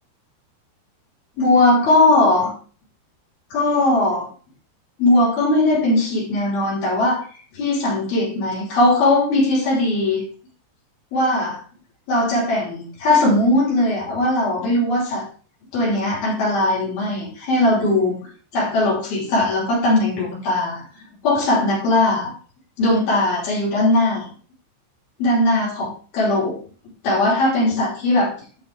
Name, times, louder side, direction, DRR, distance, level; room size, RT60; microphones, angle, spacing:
voice 1, 1.4-2.5 3.5-4.3 5.0-7.2 7.5-10.2 11.1-11.6 12.1-15.2 15.7-18.2 18.5-20.8 21.2-22.3 22.8-24.3 25.2-26.6 27.0-28.3, left 2 dB, 65° left, -5 dB, 6.0 m, -19 dB
11.0 x 7.0 x 3.5 m, 0.41 s
omnidirectional pair, 4.7 m